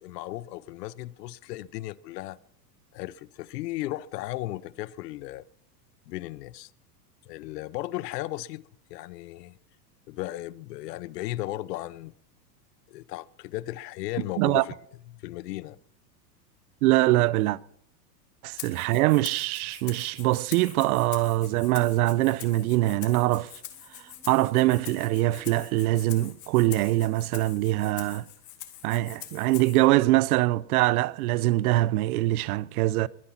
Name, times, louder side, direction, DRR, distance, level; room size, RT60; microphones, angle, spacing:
voice 1, 0.0-2.4 2.9-5.4 6.1-6.7 7.3-8.6 8.9-9.6 10.1-12.1 12.9-14.8 15.1-15.8, left 16 dB, 75° left, 0.8 m, -35 dB
voice 2, 16.8-17.6 18.4-23.5 24.3-28.2 28.8-33.1, right 17 dB, 60° right, 0.7 m, -23 dB
Rattle (instrument), 18.6-29.9, left 13 dB, 35° left, 2.4 m, -44 dB
Motorcycle, 23.5-27.1, equal, 5° right, 2.9 m, -56 dB
22.0 x 9.9 x 5.8 m
supercardioid pair, 140°, 49 cm